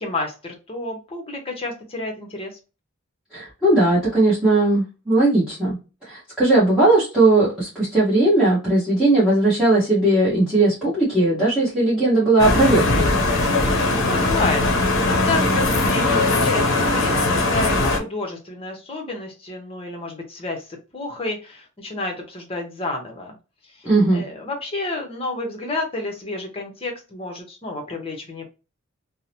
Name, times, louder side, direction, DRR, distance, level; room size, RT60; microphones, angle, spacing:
voice 1, 0.0-2.6 13.8-23.4 23.7-28.4, left 2 dB, 25° left, 2 dB, 0.7 m, -30 dB
voice 2, 3.3-5.8 6.0-13.2 23.8-24.3, right 2 dB, 5° right, -11 dB, 1.0 m, -18 dB
sound 1, 12.4-18.0, left 2 dB, 65° left, 0.6 m, -20 dB
2.8 x 2.0 x 2.8 m, 0.31 s
head